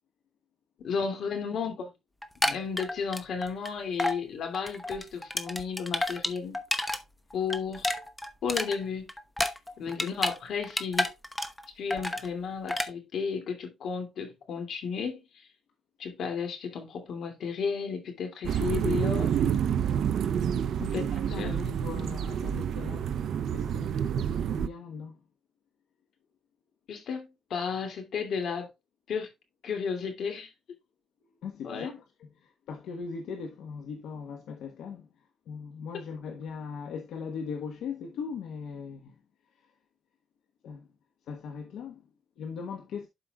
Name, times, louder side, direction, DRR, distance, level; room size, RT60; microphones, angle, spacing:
voice 1, 0.8-1.9 2.5-6.6 7.3-7.9 8.4-9.1 9.8-11.1 11.8-15.5 16.0-19.3 20.8-21.0 21.4-21.6 26.9-28.7 29.1-29.3 29.6-30.8 31.6-31.9, left 6 dB, 65° left, 2.6 m, -33 dB
sound 1, 2.2-3.7 4.0-4.2 4.5-7.0 7.3-10.4 10.6-11.6 11.9-12.3 12.7-12.9, left 1 dB, 10° left, 0.9 m, -30 dB
sound 2, 18.4-24.7, right 9 dB, 65° right, 0.6 m, -28 dB
voice 2, 20.9-25.2 31.4-31.9 32.2-35.1 35.5-39.1 39.5-39.7 40.6-40.9 41.2-42.1 42.4-43.1, left 6 dB, 80° left, 1.1 m, -40 dB
12.0 x 5.0 x 2.3 m
cardioid pair, 140°, 0 cm